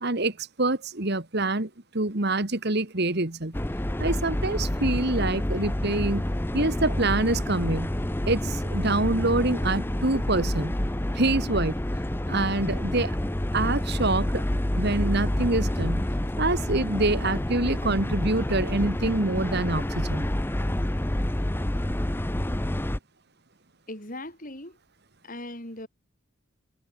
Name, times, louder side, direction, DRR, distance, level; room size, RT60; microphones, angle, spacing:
voice 1, 0.0-1.7 1.9-3.5 4.0-6.3 6.5-7.9 8.2-10.8 11.2-11.8 12.3-13.2 13.5-14.4 14.8-16.1 16.4-20.3, right 2 dB, 50° right, 1.9 m, -26 dB
sound 1, 3.5-23.0, left 1 dB, 10° left, 0.6 m, -28 dB
voice 2, 23.9-24.8 25.2-25.9, left 1 dB, 40° left, 5.8 m, -38 dB
head